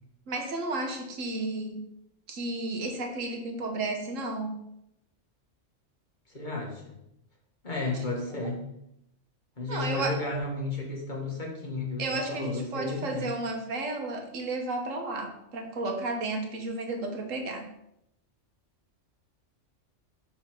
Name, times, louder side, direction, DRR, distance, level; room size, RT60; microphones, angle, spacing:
voice 1, 0.3-1.8 2.3-4.6 7.9-8.0 9.7-10.5 12.0-17.7, right 2 dB, 85° right, 3 dB, 1.5 m, -33 dB
voice 2, 6.3-7.0 7.6-8.7 9.6-13.3, left 2 dB, 40° left, -1 dB, 1.6 m, -33 dB
5.4 x 4.3 x 5.8 m, 0.79 s
omnidirectional pair, 1.3 m